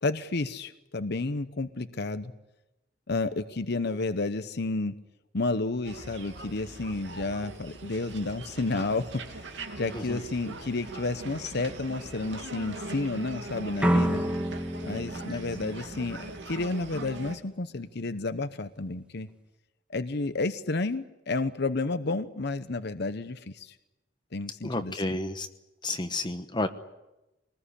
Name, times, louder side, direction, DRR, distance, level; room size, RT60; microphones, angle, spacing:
voice 1, 0.0-2.3 3.1-4.9 5.3-9.0 9.4-14.2 14.8-19.3 19.9-23.7 24.3-25.2, left 3 dB, 60° left, 11 dB, 0.9 m, -31 dB
sound 1, 5.8-17.4, right 2 dB, 70° right, 2.6 m, -41 dB
sound 2, 13.8-16.7, equal, 5° right, 1.3 m, -29 dB
voice 2, 24.6-25.5 25.8-26.7, left 2 dB, 25° left, 8 dB, 1.1 m, -31 dB
24.0 x 20.0 x 10.0 m, 0.98 s
head